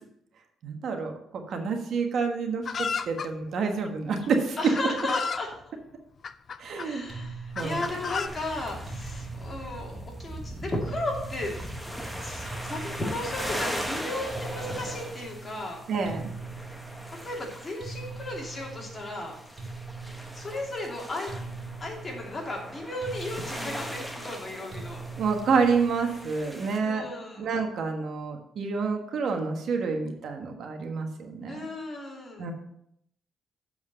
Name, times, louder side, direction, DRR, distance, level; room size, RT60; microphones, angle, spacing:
voice 1, 0.6-4.6 6.6-7.0 7.6-7.8 15.9-16.3 25.2-27.1 27.4-31.7 32.4-32.5, right 5 dB, 65° right, 4 dB, 1.3 m, -28 dB
Chicken rooster, 2.7-3.3 4.2-4.3 4.8-5.5 6.2-6.9 7.6-8.3, left 6 dB, 45° left, 0.4 m, -32 dB
voice 2, 4.6-5.5 6.8-11.8 12.2-15.8 17.2-19.4 20.3-21.3 21.8-25.0 26.8-27.5 31.5-32.5, left 2 dB, 30° left, -1 dB, 2.7 m, -35 dB
sound 1, 7.1-26.4, right 4 dB, 40° right, 2.2 m, -42 dB
sound 2, 7.6-26.8, equal, ahead, 1.3 m, -40 dB
7.4 x 4.7 x 6.7 m, 0.75 s
cardioid pair, 90°, 0 cm